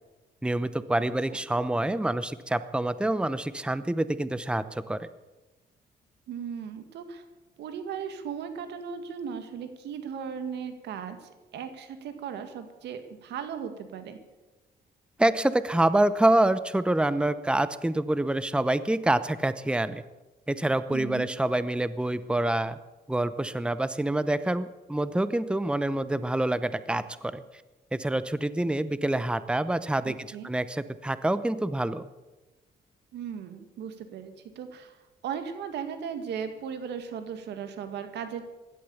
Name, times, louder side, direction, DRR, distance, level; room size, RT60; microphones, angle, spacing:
voice 1, 0.4-5.1 15.2-20.0 20.5-22.8 23.1-27.4 27.9-32.1, right 1 dB, 5° right, 14 dB, 0.8 m, -26 dB
voice 2, 6.3-7.2 7.6-14.2 20.9-21.3 30.1-30.5 33.1-35.0 35.2-38.5, right 7 dB, 90° right, 8 dB, 2.0 m, -37 dB
16.0 x 12.5 x 7.1 m, 1.1 s
cardioid pair, 80°, 17 cm